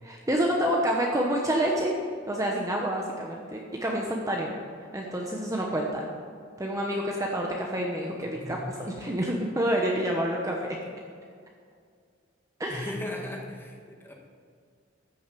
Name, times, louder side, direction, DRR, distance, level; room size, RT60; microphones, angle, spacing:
voice 1, 0.0-1.9 2.3-4.5 4.9-6.1 6.6-10.6 12.6-12.9, right 1 dB, 15° right, -1 dB, 1.0 m, -28 dB
voice 2, 8.3-8.7 12.7-14.1, left 1 dB, 10° left, -1 dB, 1.7 m, -37 dB
14.0 x 6.5 x 6.9 m, 2.1 s
head